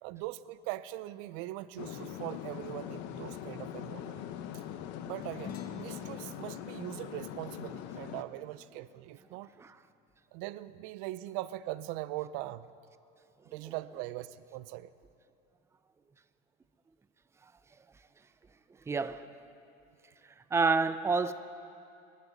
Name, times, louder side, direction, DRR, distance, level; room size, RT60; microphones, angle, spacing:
voice 1, 0.0-4.2 4.5-4.6 5.0-9.5 10.3-12.7 13.4-14.9, right 16 dB, 75° right, 16 dB, 0.5 m, -41 dB
sound 1, 1.8-8.2, left 10 dB, 65° left, 0.9 m, -42 dB
sound 2, 5.2-9.9, left 8 dB, 45° left, 1.1 m, -50 dB
voice 2, 18.9-19.3 20.5-21.3, right 4 dB, 15° right, 12 dB, 0.5 m, -28 dB
26.0 x 12.0 x 4.0 m, 2.6 s
cardioid pair, 140°, 20 cm